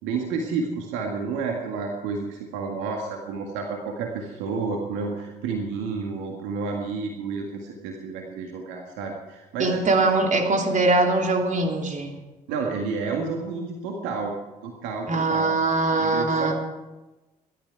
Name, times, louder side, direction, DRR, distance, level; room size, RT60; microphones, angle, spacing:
voice 1, 0.0-10.1 12.5-14.3 14.6-15.5 16.0-16.5, right 4 dB, 75° right, 2 dB, 1.9 m, -30 dB
voice 2, 9.6-12.1 15.1-16.5, right 2 dB, 40° right, 2 dB, 3.4 m, -22 dB
20.5 x 12.5 x 4.8 m, 1.1 s
hypercardioid pair, 50°, 20 cm